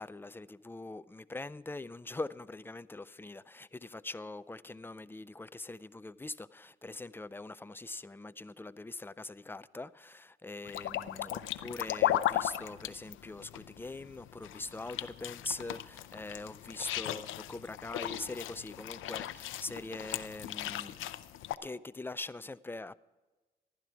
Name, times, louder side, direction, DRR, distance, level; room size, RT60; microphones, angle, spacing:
voice 1, 0.0-21.1 21.6-23.0, left 2 dB, 10° left, 0.4 m, -43 dB
sound 1, 10.6-21.5, left 13 dB, 80° left, 0.6 m, -37 dB
15.0 x 11.5 x 4.6 m
cardioid pair, 90°, 20 cm